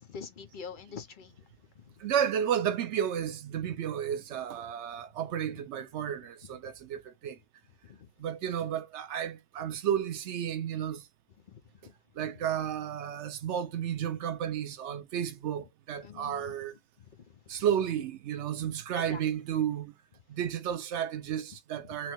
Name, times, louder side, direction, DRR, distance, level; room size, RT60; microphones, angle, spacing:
voice 1, 0.0-1.5 1.8-1.9 7.9-8.1 11.5-11.6 16.0-16.4 18.9-19.2, left 6 dB, 50° left, 0.8 m, -44 dB
voice 2, 2.0-7.4 8.2-11.0 12.2-16.7 17.5-19.9 20.3-22.1, right 9 dB, 90° right, 1.0 m, -32 dB
5.8 x 2.1 x 3.1 m
omnidirectional pair, 1.1 m